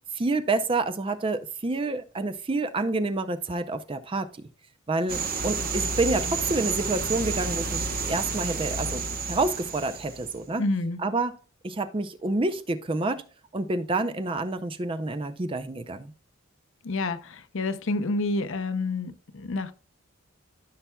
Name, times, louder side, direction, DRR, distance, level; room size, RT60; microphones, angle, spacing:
voice 1, 0.1-4.5 4.9-10.6 11.0-11.4 11.6-13.3 13.5-16.1, right 2 dB, 25° right, 0.5 m, -28 dB
sound 1, 5.1-10.4, right 4 dB, 45° right, 0.9 m, -30 dB
voice 2, 10.6-11.0 16.8-19.7, left 2 dB, 65° left, 0.7 m, -28 dB
14.0 x 5.7 x 2.3 m
head